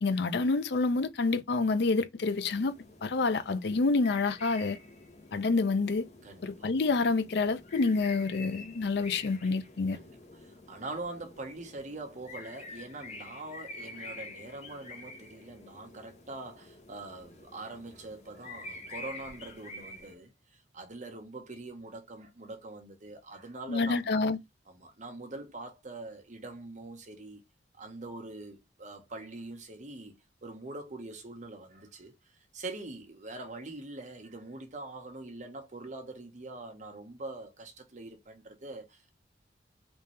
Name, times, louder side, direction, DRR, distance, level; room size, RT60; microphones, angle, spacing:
voice 1, 0.0-2.8 3.0-4.8 5.3-6.1 6.4-10.0 23.7-24.4, left 3 dB, 65° left, 0.5 m, -28 dB
Blackbird Sweden long, 2.3-20.1, left 3 dB, 40° left, 1.0 m, -48 dB
voice 2, 6.2-6.7 9.9-24.2 24.7-27.4 27.7-39.1, right 2 dB, 45° right, 0.9 m, -44 dB
3.5 x 2.8 x 3.1 m
head